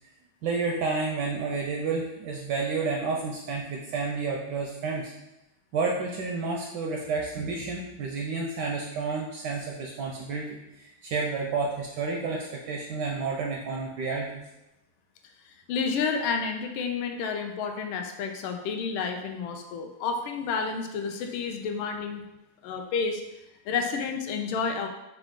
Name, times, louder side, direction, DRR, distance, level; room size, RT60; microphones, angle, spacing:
voice 1, 0.4-5.1 5.7-14.4, right 4 dB, 75° right, -1 dB, 1.0 m, -30 dB
voice 2, 15.5-22.2 22.6-23.2 23.7-24.9, left 5 dB, 80° left, 4 dB, 1.4 m, -30 dB
6.0 x 2.3 x 3.6 m, 0.94 s
omnidirectional pair, 2.3 m